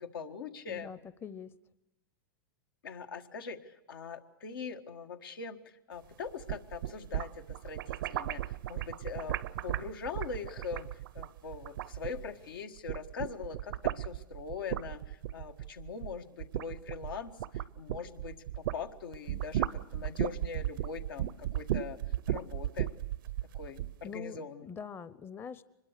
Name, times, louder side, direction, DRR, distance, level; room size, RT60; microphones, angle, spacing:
voice 1, 0.0-0.9 2.8-5.6 5.9-22.0 22.3-22.9 23.5-24.7, left 5 dB, 85° left, 5 dB, 1.8 m, -42 dB
voice 2, 0.7-1.5 24.0-25.6, left 6 dB, 20° left, 15 dB, 0.7 m, -44 dB
sound 1, 6.3-12.5 12.8-18.8 19.1-23.9, right 13 dB, 70° right, 0.7 m, -35 dB
24.5 x 21.0 x 6.6 m, 0.95 s
hypercardioid pair, 125°, 11 cm